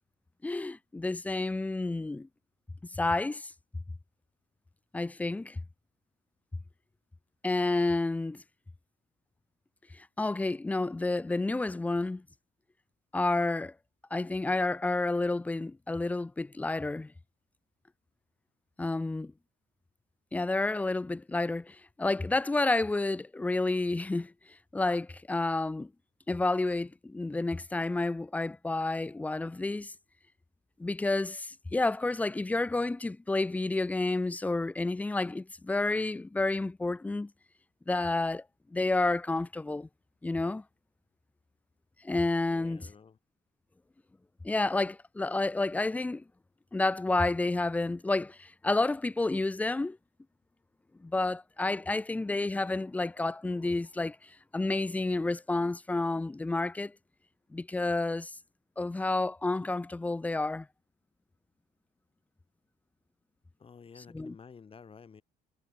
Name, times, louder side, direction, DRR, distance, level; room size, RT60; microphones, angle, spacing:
voice 1, 0.4-2.3 2.9-3.5 4.9-5.6 7.4-8.4 9.9-12.2 13.1-13.7 14.1-17.1 18.8-19.3 20.3-24.3 24.7-25.9 26.3-29.9 30.8-37.3 37.9-38.4 38.7-39.9 40.2-40.6 42.0-42.9 44.4-46.2 46.7-50.0 51.0-56.9 57.5-58.3 58.8-60.7 64.1-64.3, left 2 dB, 10° left, 0.4 m, -30 dB
voice 2, 42.5-43.2 63.6-65.2, left 6 dB, 35° left, 5.0 m, -51 dB
cardioid pair, 110°, 17 cm